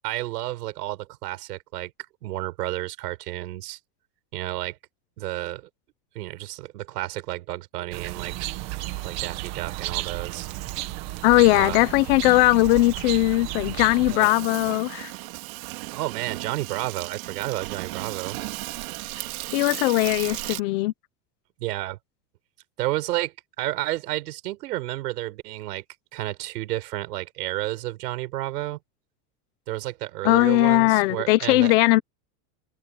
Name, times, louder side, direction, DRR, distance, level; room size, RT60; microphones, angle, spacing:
voice 1, 0.0-1.9 2.2-3.8 4.3-4.8 5.2-5.7 6.2-8.3 9.0-10.5 11.5-11.9 14.1-14.3 15.9-18.4 21.6-22.0 22.8-25.8 26.1-28.8 29.7-31.7, right 16 dB, 80° right, 6.8 m, -31 dB
sound 1, 7.9-14.2, right 18 dB, 35° right, 1.4 m, -33 dB
Insect, 9.9-20.6, right 21 dB, 60° right, 3.3 m, -36 dB
voice 2, 11.2-15.1 19.5-20.9 30.2-32.0, left 19 dB, 40° left, 0.8 m, -19 dB
supercardioid pair, 175°, 47 cm